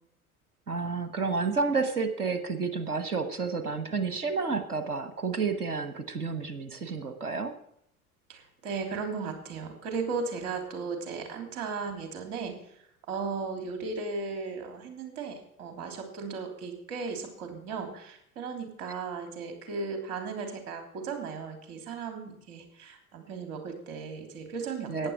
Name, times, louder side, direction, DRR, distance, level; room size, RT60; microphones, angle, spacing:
voice 1, 0.7-7.5 24.9-25.1, right 4 dB, 85° right, 9 dB, 1.3 m, -30 dB
voice 2, 8.3-12.7 13.1-25.1, right 4 dB, 60° right, 5 dB, 3.4 m, -36 dB
14.5 x 9.8 x 4.7 m, 0.73 s
figure-of-eight pair, 75°, 44 cm